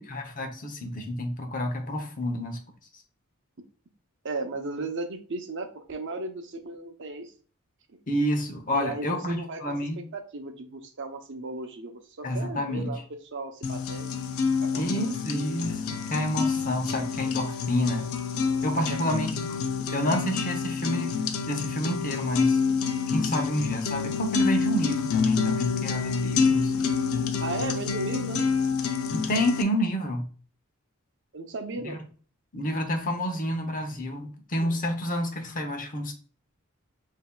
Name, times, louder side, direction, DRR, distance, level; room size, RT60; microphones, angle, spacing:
voice 1, 0.0-2.6 8.1-10.0 12.2-12.9 14.8-18.1 18.6-19.6 19.9-21.1 21.5-22.6 23.1-26.9 29.1-30.3 31.8-32.0 32.5-36.1, equal, 40° left, 4 dB, 0.8 m, -29 dB
voice 2, 4.2-7.3 7.9-8.0 8.7-9.7 10.1-14.1 14.6-15.1 18.8-19.2 27.4-28.4 31.3-32.0, right 2 dB, 55° right, 5 dB, 0.7 m, -35 dB
sound 1, 13.6-29.6, left 5 dB, 70° left, 0.5 m, -28 dB
7.5 x 2.8 x 2.3 m, 0.42 s
head